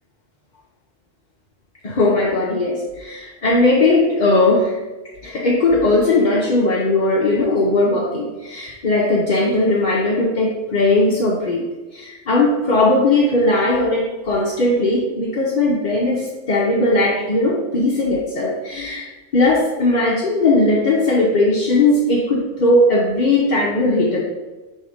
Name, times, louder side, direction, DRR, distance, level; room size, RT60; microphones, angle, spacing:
voice 1, 1.8-4.8 5.2-11.7 11.9-24.2, left 2 dB, 45° left, -3 dB, 0.7 m, -18 dB
5.5 x 3.5 x 4.9 m, 1.2 s
omnidirectional pair, 1.3 m